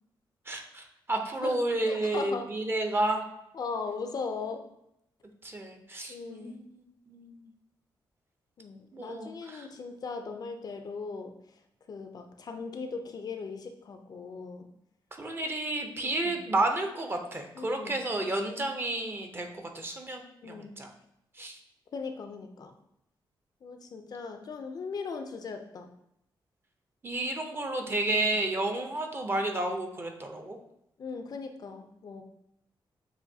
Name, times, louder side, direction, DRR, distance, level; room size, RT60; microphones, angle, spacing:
voice 1, 0.5-3.2 5.4-7.5 8.9-9.7 15.2-19.5 19.7-20.9 21.4-21.6 27.0-30.6, right 2 dB, 25° right, 4 dB, 0.6 m, -31 dB
voice 2, 1.9-2.5 3.5-4.6 6.1-6.6 8.6-11.3 11.9-14.7 16.0-16.4 17.5-18.0 20.4-20.8 21.9-22.7 23.6-25.9 28.1-28.4 31.0-32.2, left 4 dB, 50° left, 6 dB, 0.5 m, -38 dB
6.9 x 2.6 x 2.7 m, 0.79 s
cardioid pair, 115°, 9 cm